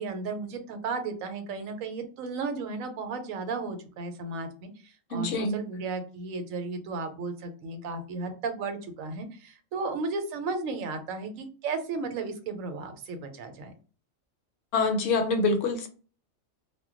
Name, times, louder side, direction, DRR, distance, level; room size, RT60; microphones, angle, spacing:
voice 1, 0.0-13.7, right 3 dB, 85° right, 7 dB, 1.0 m, -34 dB
voice 2, 5.1-5.6 14.7-15.9, left 3 dB, 70° left, 6 dB, 0.9 m, -25 dB
2.2 x 2.2 x 3.6 m, 0.37 s
omnidirectional pair, 1.4 m